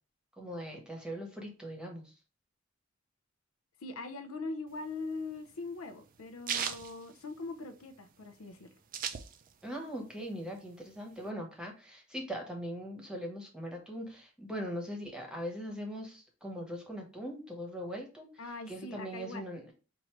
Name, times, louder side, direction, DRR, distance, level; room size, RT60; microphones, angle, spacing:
voice 1, 0.4-2.0 9.6-18.3 18.7-19.7, equal, 5° right, 1.0 m, -40 dB
voice 2, 3.8-8.7 18.4-19.5, left 3 dB, 80° left, 0.6 m, -41 dB
sound 1, 4.7-7.9 8.2-8.3 8.5-9.8 10.1-11.3, right 8 dB, 40° right, 0.4 m, -38 dB
4.6 x 2.6 x 3.1 m
head